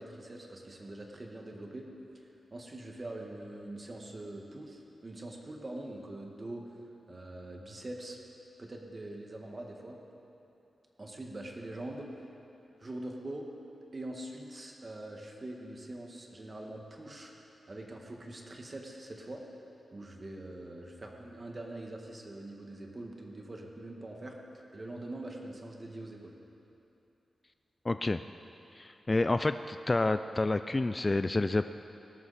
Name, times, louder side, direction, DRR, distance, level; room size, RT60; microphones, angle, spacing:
voice 1, 0.0-1.9 2.1-6.6 7.1-8.2 8.6-10.0 11.0-12.1 12.8-13.5 13.9-19.4 19.9-24.4 24.7-26.4, right 1 dB, 35° right, 1 dB, 1.6 m, -43 dB
voice 2, 27.8-28.2 28.7-31.6, left 2 dB, 25° left, 10 dB, 0.3 m, -29 dB
18.5 x 13.0 x 4.2 m, 2.9 s
wide cardioid pair, 90°, 0 cm